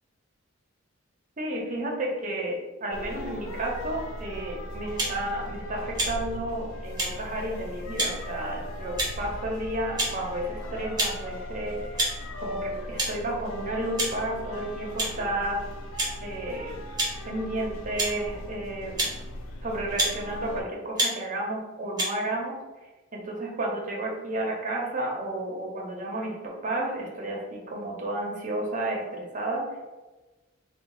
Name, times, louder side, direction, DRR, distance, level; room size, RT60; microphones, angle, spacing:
voice 1, 1.4-12.1 12.4-15.6 16.2-16.8 17.2-19.2 19.6-22.5 23.1-29.6, right 1 dB, 40° right, -1 dB, 0.8 m, -32 dB
sound 1, 2.9-20.6, left 1 dB, 85° left, 0.5 m, -38 dB
sound 2, 5.0-5.2 6.0-6.1 7.0-7.1 8.0-8.1 9.0-9.2 10.0-10.1 11.0-11.1 12.0-12.1 13.0-13.1 14.0-14.1 15.0-15.1 16.0-16.1 17.0-17.1 18.0-18.1 19.0-19.1 20.0-20.1 21.0-21.1 22.0-22.1, right 1 dB, 20° right, 1.0 m, -26 dB
3.5 x 2.3 x 3.8 m, 1.2 s
head